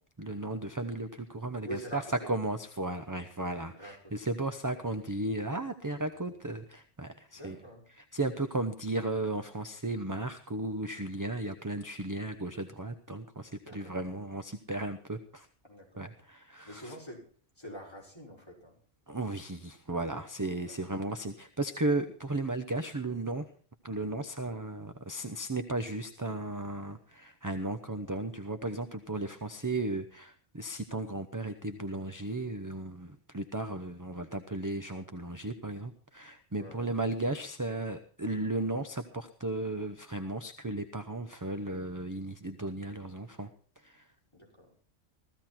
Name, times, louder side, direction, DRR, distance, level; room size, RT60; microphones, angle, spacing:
voice 1, 0.2-2.0 2.3-7.6 8.0-15.5 16.0-16.9 19.1-23.5 23.8-43.5 43.8-44.1, right 2 dB, 20° right, 7 dB, 0.7 m, -35 dB
voice 2, 1.6-2.3 3.7-4.3 4.7-4.9 6.1-6.2 7.3-7.9 8.4-8.7 13.6-14.0 15.6-16.1 16.6-17.3 17.6-18.8 20.6-20.9 36.5-36.9 44.3-44.9, equal, 20° left, -3 dB, 5.9 m, -46 dB
16.0 x 14.5 x 4.4 m, 0.43 s
omnidirectional pair, 1.2 m